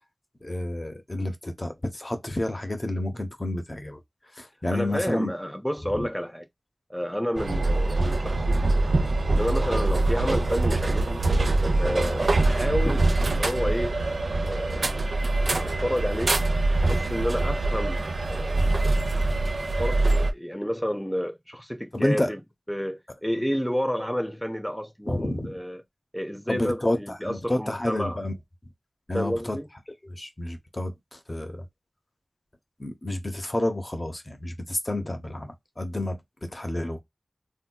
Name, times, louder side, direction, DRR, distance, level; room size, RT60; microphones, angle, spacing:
voice 1, 0.4-4.0 4.3-5.3 5.9-6.1 12.8-13.0 21.9-22.3 25.1-25.5 26.5-28.4 29.1-29.6 30.0-31.7 32.8-37.0, left 1 dB, 35° left, 0.8 m, -30 dB
voice 2, 4.7-6.5 6.9-8.7 9.2-11.3 11.8-13.9 14.5-14.9 15.3-16.3 16.8-18.6 19.8-22.4 22.7-25.8 26.1-28.2 29.1-29.7, equal, 5° left, 0.5 m, -30 dB
sound 1, 7.4-20.3, right 2 dB, 75° right, 0.5 m, -24 dB
3.4 x 2.7 x 2.2 m
wide cardioid pair, 55°, 0 cm